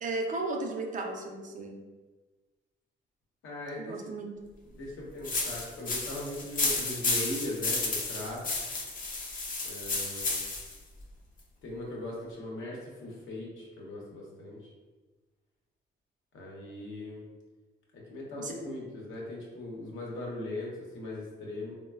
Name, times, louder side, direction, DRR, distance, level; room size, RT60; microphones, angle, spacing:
voice 1, 0.0-1.8 3.8-4.3 18.4-18.5, right 3 dB, 40° right, 2 dB, 0.4 m, -35 dB
voice 2, 3.4-4.0 4.7-8.4 9.6-10.4 11.6-14.6 16.3-17.2 18.1-21.7, left 1 dB, 75° left, -3 dB, 0.8 m, -39 dB
sound 1, 5.2-10.8, left 3 dB, 45° left, 0.5 m, -32 dB
3.0 x 2.1 x 2.3 m, 1.3 s
cardioid pair, 90°, 20 cm